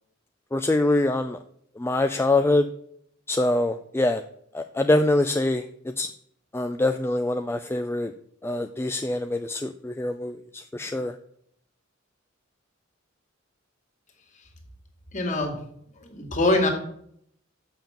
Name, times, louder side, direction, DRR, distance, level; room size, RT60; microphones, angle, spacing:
voice 1, 0.5-1.4 1.8-2.7 3.3-4.2 4.5-6.1 6.5-8.1 8.4-11.1, left 2 dB, 10° left, 7 dB, 0.3 m, -24 dB
voice 2, 15.1-15.5 16.0-16.7, left 2 dB, 40° left, 3 dB, 2.0 m, -23 dB
6.9 x 5.8 x 7.1 m, 0.68 s
head